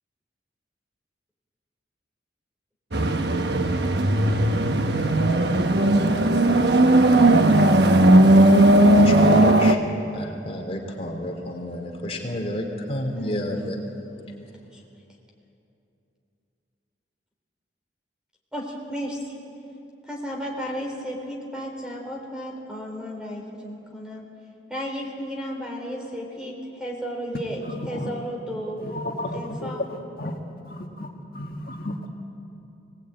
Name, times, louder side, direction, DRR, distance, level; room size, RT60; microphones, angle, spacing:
sound 1, 2.9-9.7, right 1 dB, 70° right, 1.1 m, -17 dB
voice 1, 8.8-9.8 10.1-13.7, left 1 dB, 35° left, 2.8 m, -31 dB
voice 2, 13.1-13.7 14.3-14.8 18.5-19.4 20.0-24.3 24.7-28.8 29.3-29.8, equal, 5° right, 3.9 m, -34 dB
voice 3, 27.6-28.1 28.8-30.3 30.6-31.1 31.3-32.1, left 1 dB, 55° left, 1.7 m, -33 dB
23.5 x 19.0 x 9.0 m
head